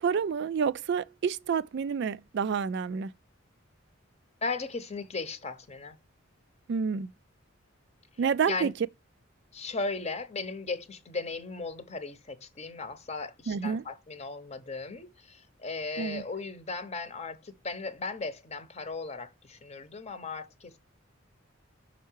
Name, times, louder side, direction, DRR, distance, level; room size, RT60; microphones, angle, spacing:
voice 1, 0.0-3.1 6.7-7.1 8.2-8.7 13.5-13.8 16.0-16.2, right 6 dB, 55° right, 0.3 m, -29 dB
voice 2, 4.4-6.0 8.2-8.7 9.5-20.8, left 3 dB, 30° left, 0.8 m, -37 dB
5.7 x 4.5 x 4.5 m
head